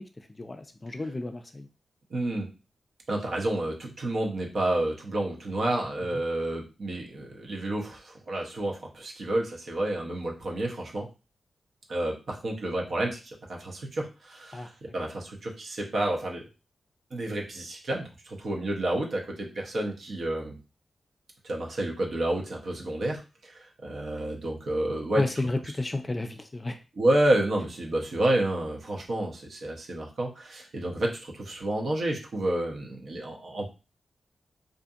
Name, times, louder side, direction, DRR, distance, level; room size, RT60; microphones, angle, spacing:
voice 1, 0.0-1.7 6.1-6.2 14.5-14.7 25.2-26.8, left 2 dB, 25° left, 7 dB, 0.3 m, -32 dB
voice 2, 2.1-2.5 3.1-11.1 11.9-16.4 17.1-20.6 21.4-25.2 27.0-33.7, right 1 dB, 60° right, 0 dB, 0.7 m, -30 dB
2.6 x 2.5 x 2.4 m, 0.30 s
wide cardioid pair, 100°, 0 cm